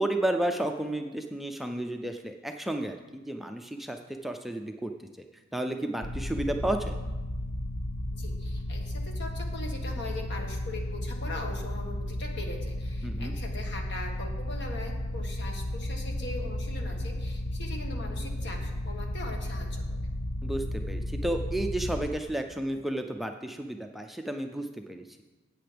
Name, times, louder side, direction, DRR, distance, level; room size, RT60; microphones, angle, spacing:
voice 1, 0.0-4.9 5.5-7.0 13.0-13.4 20.4-25.1, right 1 dB, ahead, 4 dB, 0.4 m, -32 dB
sound 1, 6.0-22.1, left 1 dB, 80° left, 0.9 m, -33 dB
voice 2, 8.1-20.0, left 2 dB, 60° left, 2 dB, 1.6 m, -41 dB
13.5 x 8.5 x 3.4 m, 1.2 s
head